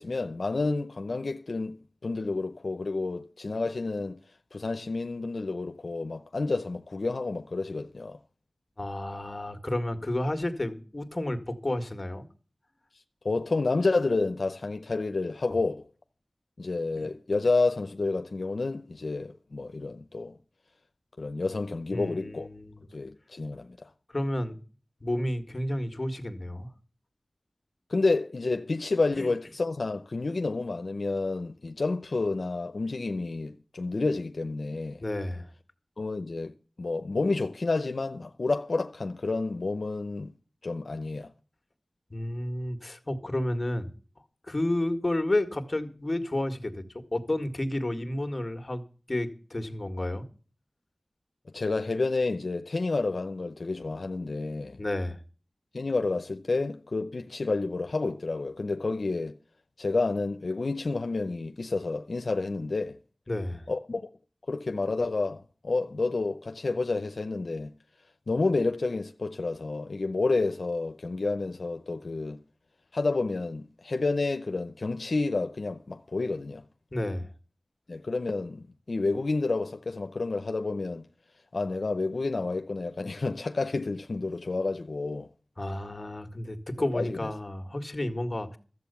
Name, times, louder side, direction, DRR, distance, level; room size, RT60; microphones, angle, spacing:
voice 1, 0.0-4.2 4.5-8.2 13.2-15.9 16.6-20.3 21.2-22.5 22.9-23.9 27.9-35.0 36.0-40.3 40.6-41.3 51.5-54.8 55.7-59.4 59.8-63.0 63.7-64.1 64.5-67.7 68.3-72.4 72.9-76.6 77.9-81.1 81.5-85.3 86.9-87.3, left 3 dB, 85° left, 0.7 m, -30 dB
voice 2, 8.8-12.3 17.0-17.1 21.9-22.8 24.1-24.6 25.0-26.7 29.2-29.3 35.0-35.5 42.1-43.9 44.4-48.8 49.1-50.3 54.8-55.2 63.3-63.7 76.9-77.3 85.6-88.6, left 1 dB, 40° left, 2.0 m, -31 dB
13.5 x 7.9 x 7.0 m
wide cardioid pair, 55°, 0 cm